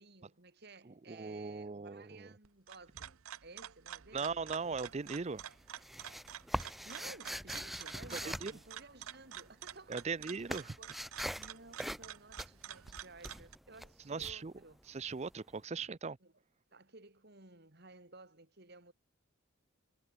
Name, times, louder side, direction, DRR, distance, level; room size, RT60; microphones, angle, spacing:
voice 1, 0.0-4.4 6.9-10.5 10.8-10.9 11.4-14.8 16.2-16.3 16.7-18.9, right 3 dB, 50° right, 3.5 m, -56 dB
voice 2, 0.9-2.3 4.1-5.4 8.1-8.5 9.9-10.8 14.1-14.5 14.9-16.2, right 4 dB, 30° right, 0.5 m, -39 dB
sound 1, 2.4-13.5, right 10 dB, 85° right, 0.9 m, -49 dB
sound 2, 4.6-5.1 5.4-9.4 9.7-15.3, equal, ahead, 0.8 m, -43 dB
head